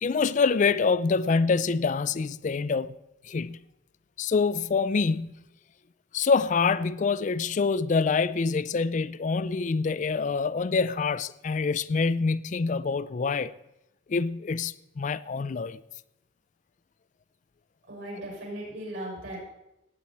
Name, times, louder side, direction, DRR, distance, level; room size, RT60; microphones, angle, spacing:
voice 1, 0.0-2.9 3.2-3.6 4.2-5.3 6.1-13.5 14.1-15.8, left 4 dB, 40° left, 0.4 m, -26 dB
voice 2, 17.9-19.4, right 1 dB, 75° right, 6.1 m, -37 dB
18.5 x 8.6 x 4.4 m
head